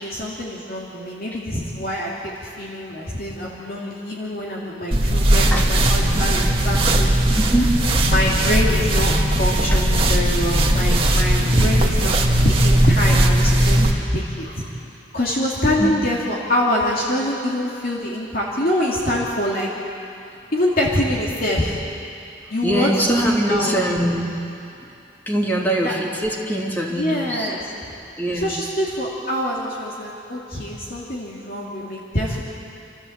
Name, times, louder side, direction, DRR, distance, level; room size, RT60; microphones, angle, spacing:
voice 1, 0.0-7.1 8.0-12.2 12.4-13.8 14.1-14.7 15.1-19.7 20.5-21.8 22.5-22.9 23.2-23.8 25.8-25.9 26.9-27.6 28.4-32.4, left 1 dB, 55° left, -5 dB, 2.7 m, -25 dB
sound 1, 4.9-13.9, right 1 dB, 30° right, 2.0 m, -18 dB
voice 2, 7.3-7.8 9.7-9.8 11.6-11.7 15.8-15.9 22.4-24.4 24.7-24.9 25.3-27.5 28.2-28.6, right 1 dB, 10° left, -2 dB, 2.7 m, -23 dB
28.0 x 14.0 x 8.0 m, 2.7 s
head